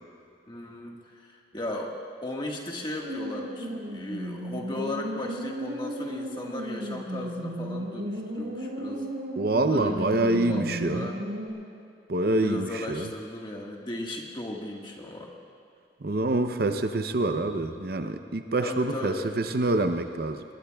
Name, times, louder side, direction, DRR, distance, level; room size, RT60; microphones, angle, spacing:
voice 1, 0.5-9.1 9.7-11.2 12.4-15.3 18.6-19.3, left 1 dB, 25° left, -1 dB, 1.5 m, -36 dB
sound 1, 3.0-11.5, equal, 85° right, 4.0 m, -35 dB
voice 2, 9.4-11.1 12.1-13.1 16.0-20.4, right 2 dB, 55° right, 7 dB, 0.6 m, -26 dB
21.5 x 21.5 x 2.3 m, 2.6 s
head